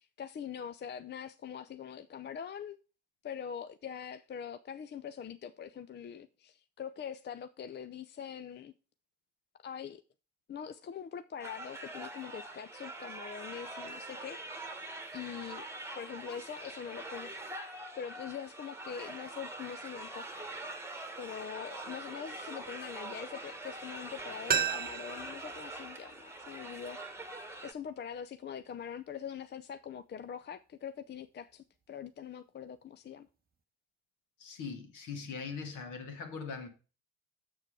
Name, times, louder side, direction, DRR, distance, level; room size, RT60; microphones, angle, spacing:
voice 1, 0.0-2.8 3.2-8.7 9.6-10.0 10.5-14.4 15.1-15.6 15.9-17.3 17.9-20.4 21.2-27.0 27.6-33.3, left 8 dB, 30° left, 0.5 m, -43 dB
sound 1, 11.4-27.7, right 2 dB, 5° right, 1.4 m, -44 dB
sound 2, 24.5-27.3 27.6-27.7, right 8 dB, 25° right, 0.9 m, -36 dB
voice 2, 34.4-36.7, left 5 dB, 60° left, 1.9 m, -41 dB
7.1 x 6.6 x 4.7 m
hypercardioid pair, 50°, 35 cm